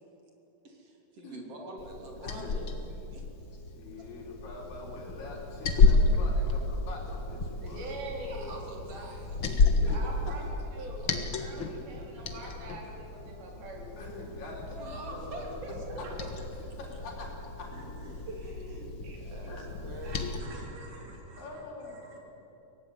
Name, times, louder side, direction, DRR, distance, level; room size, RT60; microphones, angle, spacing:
voice 1, 0.6-2.7 3.1-3.6 7.6-7.8 8.3-10.3 10.8-11.1 14.8-16.1 18.3-20.3, right 2 dB, 40° right, 1 dB, 3.9 m, -45 dB
Liquid, 1.8-20.4, left 3 dB, 50° left, 1.5 m, -31 dB
voice 2, 2.2-2.8 3.4-7.9 9.8-9.9 11.5-11.9 12.2-12.4 14.0-15.6 16.0-16.1 16.6-17.7 19.5-19.7 21.4-21.9, left 2 dB, 65° left, -3 dB, 5.9 m, -44 dB
voice 3, 7.6-8.5 9.9-13.9 16.0-16.2 17.7-18.3 19.0-19.2 20.0-22.2, right 2 dB, 80° right, -1 dB, 5.9 m, -44 dB
23.5 x 18.0 x 9.4 m, 3.0 s
omnidirectional pair, 4.2 m